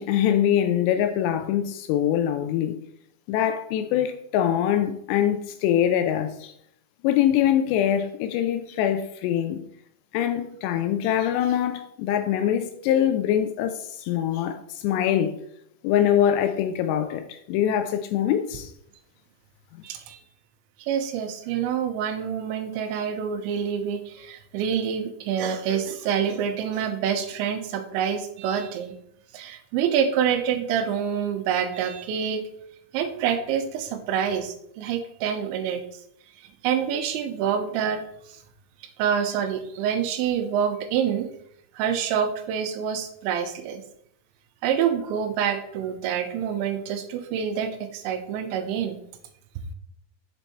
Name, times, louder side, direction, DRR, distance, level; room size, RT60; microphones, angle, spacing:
voice 1, 0.0-2.8 3.3-6.5 7.0-9.6 10.1-15.3 15.8-18.7, left 10 dB, 85° left, 2.4 m, -23 dB
voice 2, 19.8-20.2 20.8-28.9 29.3-32.4 32.9-35.8 36.6-38.4 39.0-41.3 41.7-43.8 44.6-49.0, right 8 dB, 85° right, 2.9 m, -27 dB
7.1 x 4.5 x 4.1 m
omnidirectional pair, 5.4 m